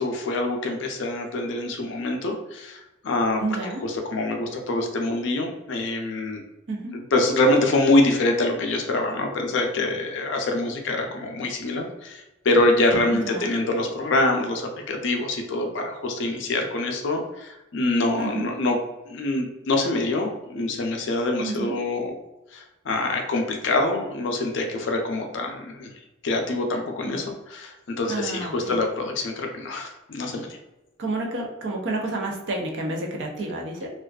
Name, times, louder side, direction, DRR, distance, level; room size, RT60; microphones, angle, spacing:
voice 1, 0.0-3.4 3.8-6.4 6.9-18.8 19.1-22.2 22.5-25.9 26.2-30.5, left 2 dB, 65° left, 2 dB, 0.4 m, -25 dB
voice 2, 3.4-3.8 6.7-6.9 13.1-13.5 18.2-18.5 21.4-21.7 27.0-27.2 28.1-28.5 31.0-33.9, right 2 dB, 60° right, 0 dB, 0.5 m, -30 dB
2.4 x 2.2 x 2.3 m, 0.98 s
head